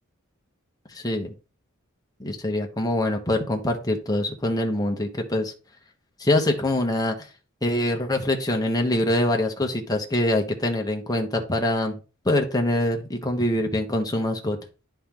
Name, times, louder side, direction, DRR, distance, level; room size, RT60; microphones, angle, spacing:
voice 1, 0.9-1.3 2.2-5.5 6.2-7.3 7.6-12.0 12.2-14.6, left 1 dB, 20° left, 3 dB, 1.1 m, -24 dB
10.0 x 4.4 x 3.8 m, 0.33 s
head